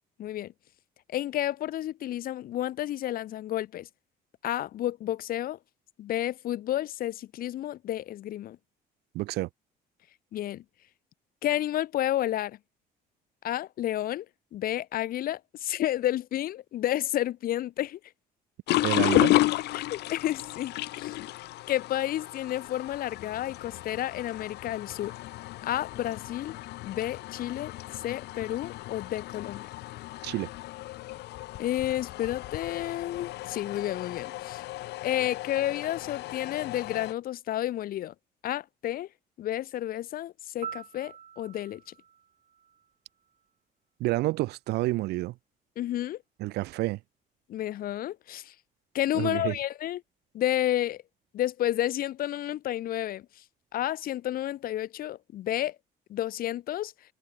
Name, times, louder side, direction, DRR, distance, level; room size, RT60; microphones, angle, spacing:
voice 1, 0.2-0.5 1.1-3.9 4.4-5.6 6.0-8.6 10.3-10.6 11.4-12.6 13.4-14.2 14.5-18.0 19.7-21.2 21.7-25.1 25.6-26.5 26.8-29.7 31.6-34.6 35.0-38.1 38.4-39.1 39.4-41.8 45.8-46.2 47.5-48.5 48.9-50.0 50.3-51.0 51.3-53.3 53.7-55.8 56.1-56.9, left 13 dB, 60° left, 0.8 m, -31 dB
voice 2, 9.1-9.5 18.8-19.4 30.2-30.5 44.0-45.3 46.4-47.0 49.1-49.6, right 19 dB, 75° right, 0.5 m, -29 dB
sound 1, 18.7-37.1, left 17 dB, 80° left, 2.3 m, -33 dB
Piano, 40.6-43.5 51.7-51.9, right 8 dB, 45° right, 4.5 m, -45 dB
cardioid pair, 110°, 17 cm